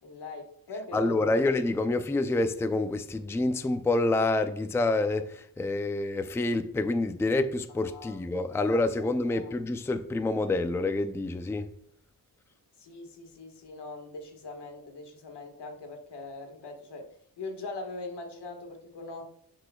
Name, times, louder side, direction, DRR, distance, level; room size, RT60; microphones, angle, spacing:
voice 1, 0.0-1.4 7.8-8.2 8.5-9.6 12.8-17.1 17.4-19.2, left 3 dB, 85° left, 1.6 m, -42 dB
voice 2, 0.9-11.7, left 2 dB, 5° left, 0.4 m, -27 dB
10.0 x 4.9 x 2.3 m
wide cardioid pair, 105°, 40 cm